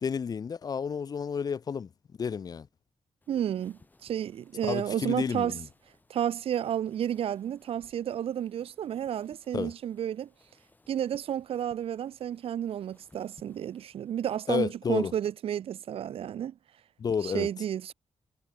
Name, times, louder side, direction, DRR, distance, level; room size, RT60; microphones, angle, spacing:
voice 1, 0.0-1.9 2.2-2.7 4.6-5.7 9.5-9.7 14.5-15.1 17.0-17.5, left 6 dB, 35° left, 0.7 m, -31 dB
sound 1, 3.2-14.4, left 2 dB, 15° left, 7.6 m, -63 dB
voice 2, 3.3-5.6 6.1-10.3 10.9-16.5 17.2-17.9, right 10 dB, 60° right, 0.5 m, -31 dB
wide cardioid pair, 180°, 11 cm